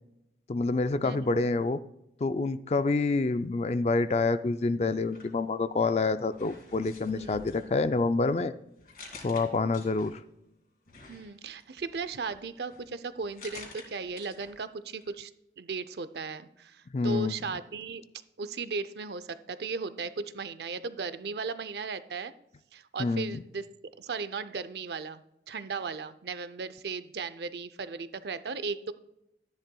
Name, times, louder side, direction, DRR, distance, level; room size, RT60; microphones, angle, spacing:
voice 1, 0.5-1.8 2.2-8.5 9.2-10.2 16.9-17.4 23.0-23.4, left 3 dB, 35° left, 12 dB, 0.4 m, -27 dB
sound 1, 5.0-5.9 6.3-10.4 10.9-14.7 15.0-15.1, left 3 dB, 55° left, 2.1 m, -51 dB
voice 2, 7.1-7.7 11.1-15.3 15.6-18.0 18.4-22.3 22.7-23.7 24.0-28.9, right 4 dB, 70° right, 14 dB, 0.5 m, -36 dB
12.5 x 10.5 x 2.3 m, 0.85 s
head